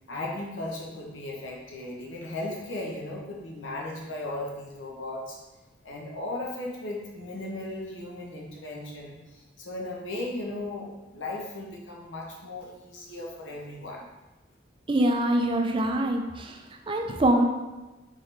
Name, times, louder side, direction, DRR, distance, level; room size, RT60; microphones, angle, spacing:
voice 1, 0.1-5.4 5.8-14.1, left 2 dB, 75° left, -2 dB, 1.0 m, -36 dB
voice 2, 14.9-17.4, right 1 dB, 25° right, 4 dB, 0.4 m, -24 dB
4.0 x 3.9 x 3.3 m, 1.1 s
head